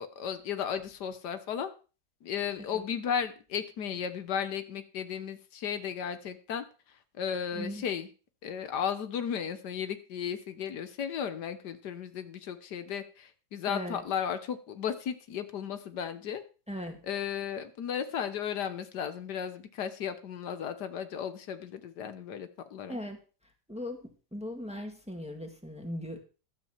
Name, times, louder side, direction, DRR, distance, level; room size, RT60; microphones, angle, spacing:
voice 1, 0.0-1.7 2.2-6.6 7.2-8.1 8.4-16.4 17.0-23.0, left 8 dB, 85° left, 10 dB, 1.6 m, -35 dB
voice 2, 7.5-7.9 13.7-14.0 16.7-17.0 22.9-23.2 23.7-26.2, equal, 5° right, 3 dB, 1.9 m, -39 dB
12.0 x 6.0 x 7.3 m, 0.35 s
omnidirectional pair, 1.8 m